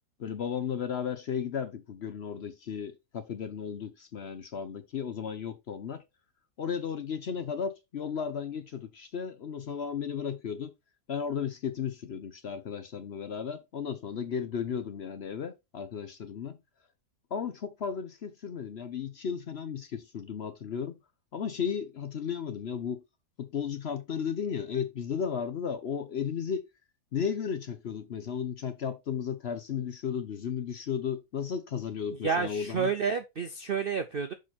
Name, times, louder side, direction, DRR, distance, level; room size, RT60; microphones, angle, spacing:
voice 1, 0.2-6.0 6.6-10.7 11.1-16.6 17.3-21.0 21.3-23.0 23.4-26.6 27.1-32.9, left 7 dB, 55° left, 0.8 m, -34 dB
voice 2, 32.2-34.3, right 6 dB, 60° right, 0.5 m, -30 dB
6.2 x 4.7 x 4.2 m
omnidirectional pair, 1.6 m